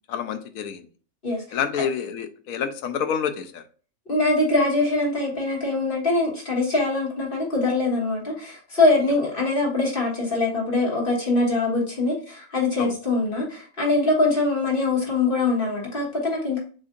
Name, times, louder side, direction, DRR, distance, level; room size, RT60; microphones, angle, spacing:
voice 1, 0.1-0.9 1.5-3.6 12.8-12.9, left 7 dB, 75° left, 1.0 m, -28 dB
voice 2, 1.2-1.6 4.1-16.6, left 2 dB, 40° left, 1.6 m, -23 dB
7.3 x 2.6 x 2.5 m
omnidirectional pair, 1.6 m